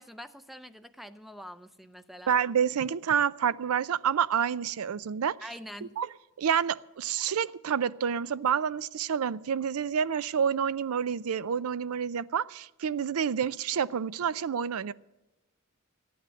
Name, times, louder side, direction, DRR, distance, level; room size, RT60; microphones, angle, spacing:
voice 1, 0.0-2.3 5.4-5.9, equal, ahead, 12 dB, 0.5 m, -45 dB
voice 2, 2.3-5.4 6.0-6.1 6.4-14.9, right 7 dB, 85° right, 19 dB, 0.4 m, -28 dB
14.5 x 9.4 x 7.0 m, 1.0 s
head